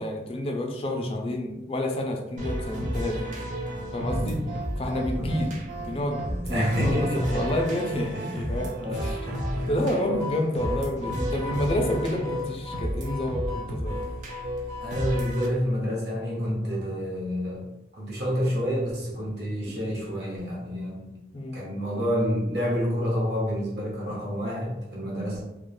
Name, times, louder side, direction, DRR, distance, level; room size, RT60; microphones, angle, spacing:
voice 1, 0.0-3.3 3.9-4.4 4.8-8.7 9.0-9.2 9.7-14.0 21.3-21.6, left 1 dB, 30° left, 2 dB, 0.3 m, -29 dB
sound 1, 2.4-15.5, equal, 40° right, 0.4 m, -32 dB
voice 2, 4.0-4.5 5.1-5.5 6.5-7.6 8.1-9.7 14.8-21.2 21.5-25.4, equal, 65° right, -4 dB, 0.8 m, -29 dB
2.3 x 2.2 x 3.0 m, 0.96 s
head